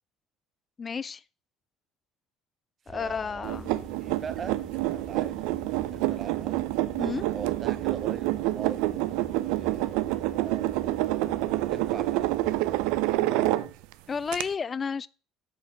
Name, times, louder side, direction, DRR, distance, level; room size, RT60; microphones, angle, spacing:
voice 1, 0.8-1.2 2.9-3.8 7.0-7.2 14.1-15.1, left 5 dB, 30° left, 0.3 m, -32 dB
sound 1, 2.9-13.0, right 1 dB, 20° right, 2.2 m, -46 dB
voice 2, 2.9-3.5 4.0-6.6 7.3-10.8 11.7-13.7, right 7 dB, 40° right, 0.9 m, -42 dB
sound 2, 3.4-13.9 14.3-14.4, right 17 dB, 85° right, 0.5 m, -28 dB
8.4 x 4.3 x 7.0 m
supercardioid pair, 105°, 0 cm